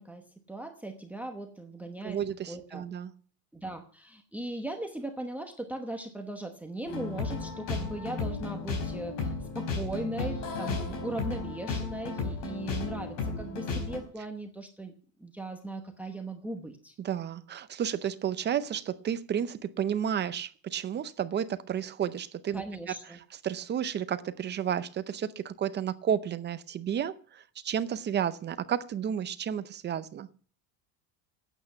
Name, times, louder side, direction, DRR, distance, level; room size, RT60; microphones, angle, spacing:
voice 1, 0.0-2.8 3.5-14.9 15.2-16.9 22.5-23.2, right 1 dB, 5° right, 6 dB, 1.0 m, -38 dB
voice 2, 2.0-3.1 10.8-10.9 17.0-22.6 23.4-30.3, right 9 dB, 25° right, 13 dB, 0.6 m, -32 dB
sound 1, 6.9-14.0, left 4 dB, 45° left, 4.4 m, -34 dB
12.0 x 8.9 x 9.2 m, 0.43 s
cardioid pair, 170°, 44 cm